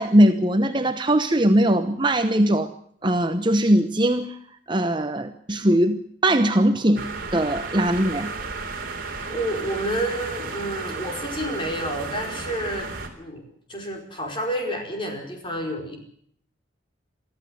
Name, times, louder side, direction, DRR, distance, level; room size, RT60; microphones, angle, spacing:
voice 1, 0.0-2.7 3.0-4.4 4.7-8.3, right 1 dB, 25° right, 8 dB, 0.9 m, -20 dB
sound 1, 7.0-13.1, right 3 dB, 50° right, 3.6 m, -33 dB
voice 2, 9.0-12.9 13.2-16.0, right 1 dB, 25° left, 2 dB, 5.0 m, -30 dB
24.0 x 14.5 x 7.8 m, 0.65 s
head